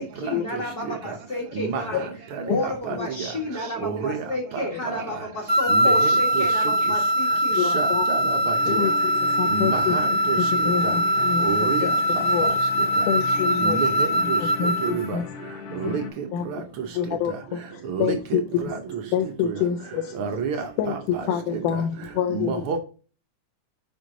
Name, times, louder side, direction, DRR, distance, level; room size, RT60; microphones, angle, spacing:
voice 1, 0.0-2.0 2.4-7.6, left 1 dB, 40° left, -1 dB, 1.5 m, -32 dB
voice 2, 3.8-4.2 5.7-5.9 7.7-8.5 9.5-10.0 10.3-10.4 11.5-11.8 13.6-14.4 14.8-15.2 15.8-15.9 17.9-18.4 20.2-20.6 22.3-22.8, right 6 dB, 90° right, 4 dB, 1.2 m, -28 dB
sound 1, 5.5-15.1, right 1 dB, 15° right, 0.9 m, -22 dB
voice 3, 7.6-8.1 8.7-10.0 10.4-12.6 13.0-13.9 14.2-15.3 15.8-16.0 16.3-18.8 19.1-20.2 20.8-22.6, left 8 dB, 80° left, 4 dB, 2.2 m, -27 dB
sound 2, 8.5-16.1, left 5 dB, 65° left, 2.7 m, -37 dB
6.2 x 5.3 x 3.8 m, 0.36 s
omnidirectional pair, 3.7 m